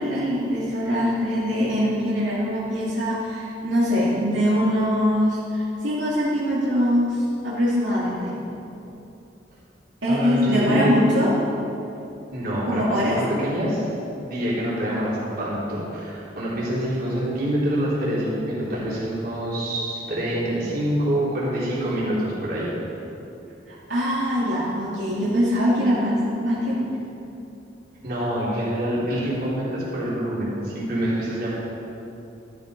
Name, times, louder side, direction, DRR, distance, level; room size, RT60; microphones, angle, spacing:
voice 1, 0.0-8.3 10.0-11.3 12.7-13.2 23.7-27.0, equal, 90° right, -8 dB, 2.6 m, -23 dB
voice 2, 10.1-11.0 12.3-13.8 14.2-22.7 28.0-31.5, equal, 55° right, -8 dB, 4.0 m, -26 dB
14.0 x 13.0 x 5.3 m, 2.8 s
head